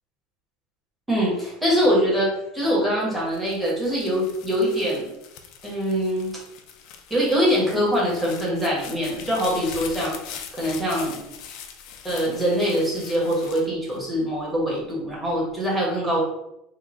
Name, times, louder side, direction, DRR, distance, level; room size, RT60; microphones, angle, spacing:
voice 1, 1.1-5.1 5.6-6.3 7.1-10.1 10.5-11.3 12.0-16.2, equal, 5° right, -6 dB, 0.9 m, -23 dB
sound 1, 3.2-14.6 15.1-15.7, left 7 dB, 45° left, 0.4 m, -42 dB
3.8 x 2.1 x 3.4 m, 0.85 s
cardioid pair, 180°, 0 cm